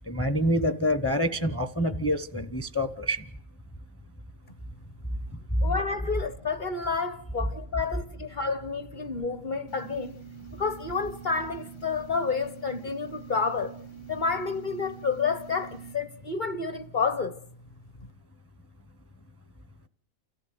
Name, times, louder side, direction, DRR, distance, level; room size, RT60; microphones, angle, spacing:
voice 1, 0.1-3.2 5.6-5.7, equal, 15° left, 0.6 m, -26 dB
voice 2, 5.6-10.1 10.6-13.7 14.1-17.3, left 4 dB, 40° left, 1.0 m, -30 dB
sound 1, 9.7-15.9, right 8 dB, 60° left, 2.1 m, -46 dB
29.0 x 14.0 x 7.8 m
omnidirectional pair, 1.5 m